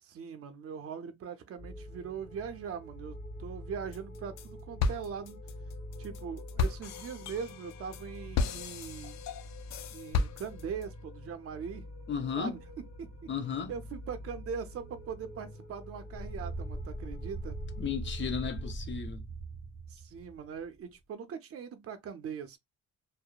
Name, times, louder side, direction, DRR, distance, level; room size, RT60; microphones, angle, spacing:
voice 1, 0.0-5.4 6.0-9.2 9.9-11.9 12.3-12.6 13.0-13.3 13.7-17.6 19.9-22.6, right 6 dB, 50° right, 0.6 m, -41 dB
sound 1, 1.6-18.7, left 1 dB, 20° left, 1.2 m, -46 dB
sound 2, 3.9-4.5 4.8-10.8, left 4 dB, 65° left, 0.4 m, -34 dB
voice 2, 12.1-12.5 13.3-13.7 17.8-19.2, left 6 dB, 40° left, 0.8 m, -34 dB
sound 3, 16.1-20.8, right 2 dB, 10° right, 0.7 m, -40 dB
2.8 x 2.0 x 2.3 m
cardioid pair, 90°, 30 cm